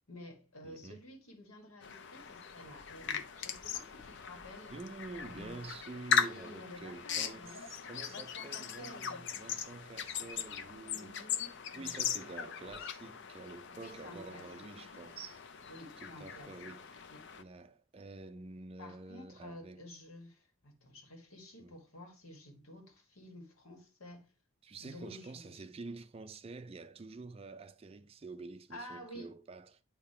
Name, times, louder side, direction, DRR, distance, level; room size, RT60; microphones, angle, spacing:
voice 1, 0.1-4.7 5.1-5.6 6.1-7.7 8.1-9.2 10.9-12.0 13.7-14.7 15.7-16.8 17.1-17.3 18.8-24.3 24.8-25.6 28.7-29.3, left 1 dB, 80° left, 1.8 m, -51 dB
voice 2, 0.6-1.0 4.7-11.2 11.7-15.4 16.0-16.9 17.4-19.8 21.6-21.8 24.6-29.8, right 3 dB, 25° right, 0.3 m, -48 dB
sound 1, 1.8-17.4, left 7 dB, 55° left, 0.5 m, -39 dB
8.5 x 2.9 x 4.3 m
head